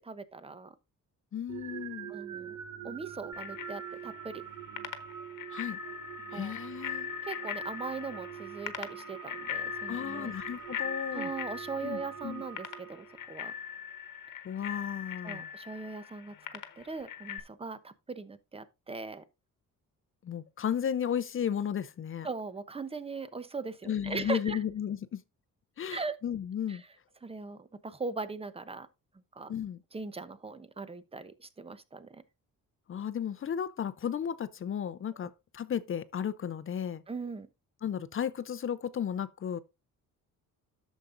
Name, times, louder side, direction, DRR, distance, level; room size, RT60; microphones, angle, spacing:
voice 1, 0.0-0.7 2.1-2.6 2.8-4.4 6.3-6.5 7.2-10.3 11.1-13.5 15.2-19.2 22.2-24.6 25.9-26.2 26.7-26.8 27.2-28.9 29.3-29.5 29.9-32.2 35.2-35.3 37.1-37.5, right 4 dB, 15° right, 0.8 m, -40 dB
voice 2, 1.3-2.1 5.5-5.8 6.3-7.1 9.9-11.3 11.8-12.4 14.4-15.5 20.2-22.3 23.9-25.2 25.8-26.8 29.5-29.8 32.9-37.0 37.8-39.6, left 8 dB, 40° left, 0.5 m, -34 dB
sound 1, 1.5-13.5, right 9 dB, 60° right, 0.9 m, -44 dB
Bicycle bell, 3.3-17.4, left 9 dB, 65° left, 1.1 m, -41 dB
11.5 x 7.2 x 2.6 m
cardioid pair, 100°, 34 cm